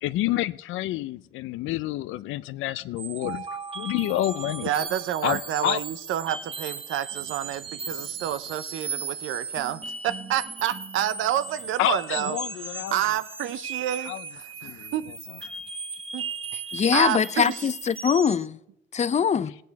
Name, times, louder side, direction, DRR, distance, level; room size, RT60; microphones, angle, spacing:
voice 1, 0.0-3.5 3.8-4.7 5.2-5.8 11.8-13.0 14.1-14.2 14.6-14.9, left 15 dB, 90° left, 0.4 m, -28 dB
sound 1, 3.0-18.5, right 4 dB, 30° right, 1.1 m, -37 dB
voice 2, 4.6-15.1 15.4-15.5 16.1-16.2 16.9-17.6, right 11 dB, 85° right, 0.6 m, -29 dB
voice 3, 16.7-18.6 18.9-19.5, left 7 dB, 35° left, 0.6 m, -23 dB
17.0 x 9.2 x 4.7 m
cardioid pair, 90°, 20 cm